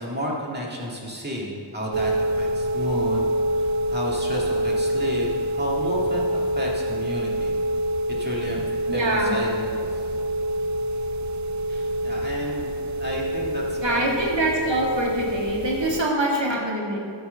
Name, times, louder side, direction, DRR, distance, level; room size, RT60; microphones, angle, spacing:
voice 1, 0.0-3.2 3.5-7.5 8.2-8.6 8.9-10.0 11.7-12.7 13.0-14.3, equal, 20° right, -3 dB, 2.0 m, -32 dB
sound 1, 1.9-16.0, right 1 dB, 40° right, 0.4 m, -26 dB
voice 2, 8.9-9.4 13.8-17.0, right 1 dB, 65° right, -2 dB, 2.1 m, -24 dB
13.5 x 4.7 x 6.4 m, 2.4 s
wide cardioid pair, 90°, 48 cm